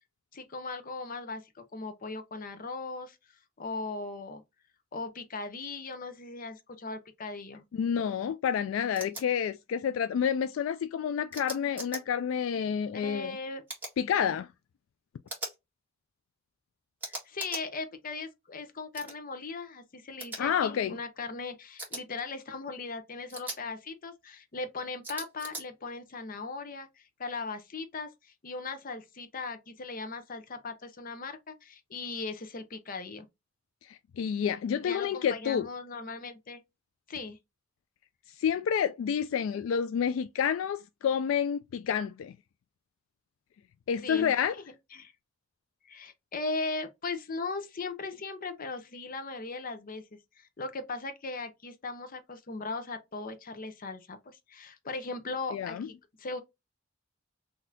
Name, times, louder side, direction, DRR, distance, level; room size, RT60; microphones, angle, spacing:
voice 1, 0.3-3.2 3.6-4.4 4.9-7.6 12.9-13.6 17.1-33.3 34.8-36.6 37.1-37.4 44.0-44.6 44.9-45.1 45.8-50.0 50.4-54.2 54.5-56.4, left 3 dB, 45° left, 0.7 m, -38 dB
voice 2, 7.7-13.4 14.0-14.5 20.4-20.9 33.9-35.7 38.4-42.3 43.9-44.5 55.5-55.9, left 8 dB, 75° left, 0.3 m, -29 dB
sound 1, 9.0-9.2 11.3-12.0 13.7-13.9 15.3-15.5 17.0-17.6 18.9-19.1 20.2-20.4 21.8-22.0 23.3-23.6 25.0-25.6, right 2 dB, 10° right, 1.8 m, -39 dB
4.0 x 2.7 x 2.6 m
head